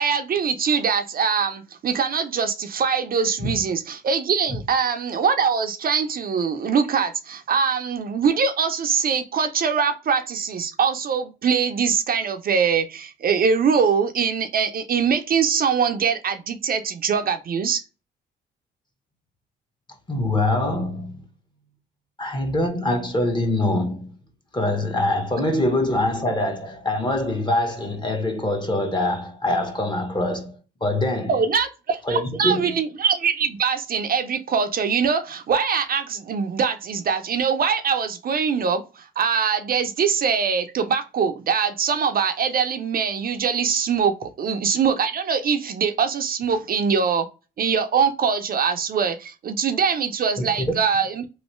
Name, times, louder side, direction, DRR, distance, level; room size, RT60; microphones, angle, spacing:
voice 1, 0.0-17.8 31.3-47.3 47.6-51.3, right 6 dB, 50° right, 0.5 m, -23 dB
voice 2, 20.1-21.3 22.2-24.1 24.5-31.4 32.0-32.7 50.4-50.8, left 1 dB, 20° left, 0.9 m, -24 dB
3.1 x 2.5 x 3.0 m
cardioid pair, 90°, 20 cm